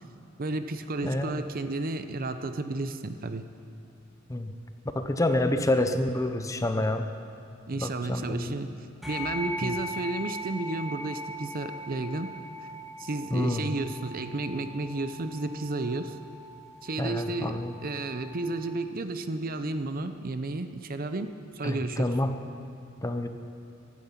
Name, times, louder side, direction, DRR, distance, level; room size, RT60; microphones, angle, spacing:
voice 1, 0.4-3.4 7.7-8.7 9.1-12.3 13.0-16.2 16.8-22.2, right 2 dB, 45° right, 9 dB, 0.7 m, -32 dB
voice 2, 1.0-1.4 4.3-4.5 4.9-7.1 7.8-8.5 9.6-9.7 13.3-13.7 17.0-17.7 21.6-22.3 23.0-23.3, left 1 dB, 15° left, 7 dB, 0.7 m, -28 dB
sound 1, 9.0-18.7, equal, ahead, 2.6 m, -40 dB
15.0 x 12.5 x 5.8 m, 2.5 s
head